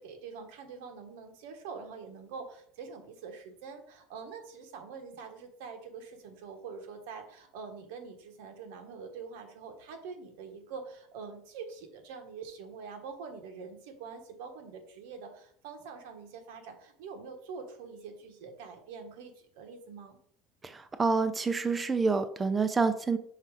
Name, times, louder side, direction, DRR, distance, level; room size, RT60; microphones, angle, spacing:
voice 1, 0.0-20.2, right 5 dB, 80° right, 5 dB, 1.2 m, -45 dB
voice 2, 20.6-23.2, right 4 dB, 15° right, 9 dB, 0.5 m, -28 dB
5.7 x 3.6 x 4.8 m, 0.63 s
cardioid pair, 135°, 0 cm